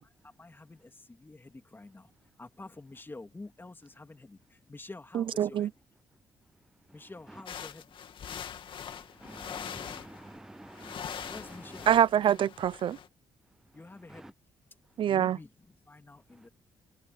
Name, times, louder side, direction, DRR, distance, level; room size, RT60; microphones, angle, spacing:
voice 1, 0.4-2.1 2.4-4.4 4.7-5.7 6.9-7.9 11.3-11.9 13.7-14.3 15.1-15.5 15.9-16.5, left 2 dB, 20° left, 2.9 m, -48 dB
voice 2, 5.1-5.7 11.9-13.0 15.0-15.4, right 10 dB, 65° right, 0.5 m, -25 dB
sound 1, 7.5-10.4 10.7-13.1, left 8 dB, 65° left, 2.4 m, -43 dB
voice 3, 9.2-11.5 14.1-14.3, right 1 dB, 5° right, 0.3 m, -48 dB
supercardioid pair, 60°, 9 cm